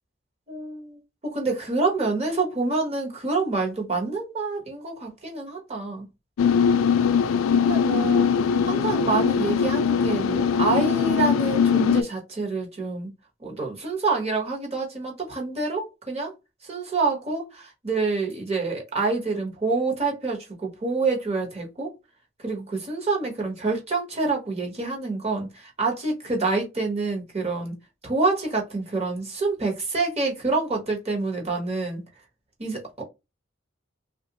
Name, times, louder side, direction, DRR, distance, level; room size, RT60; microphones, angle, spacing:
voice 1, 0.5-6.1 7.5-8.3 8.6-13.1 13.4-16.3 16.6-21.9 22.4-27.7 28.0-32.0 32.6-33.0, right 3 dB, 30° right, 1.1 m, -27 dB
sound 1, 6.4-12.0, left 6 dB, 80° left, 0.3 m, -21 dB
3.2 x 2.5 x 2.8 m
head